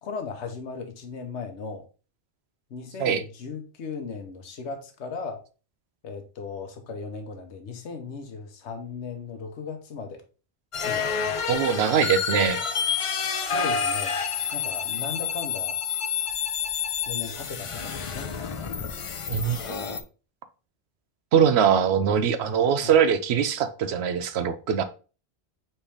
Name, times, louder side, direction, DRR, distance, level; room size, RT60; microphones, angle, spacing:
voice 1, 0.0-1.8 2.7-5.4 6.0-10.2 10.8-11.4 13.3-14.1 14.5-15.8 17.1-18.3 22.8-23.0, left 5 dB, 85° left, 6 dB, 1.1 m, -37 dB
sound 1, 10.7-20.0, left 7 dB, 55° left, 0.3 m, -29 dB
voice 2, 11.5-12.6 19.3-19.8 21.3-24.8, right 7 dB, 75° right, 11 dB, 0.8 m, -22 dB
4.3 x 3.4 x 3.4 m, 0.35 s
omnidirectional pair, 1.1 m